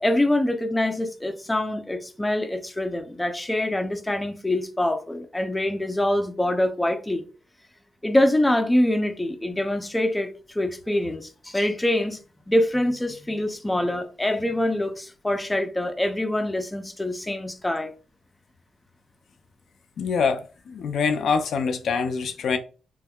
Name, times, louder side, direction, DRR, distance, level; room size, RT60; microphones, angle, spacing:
voice 1, 0.0-7.2 8.0-12.2 12.5-17.9, left 1 dB, 10° left, 0.5 m, -25 dB
voice 2, 20.0-22.6, left 5 dB, 75° left, 0.4 m, -25 dB
3.5 x 3.1 x 2.3 m
cardioid pair, 90°, 0 cm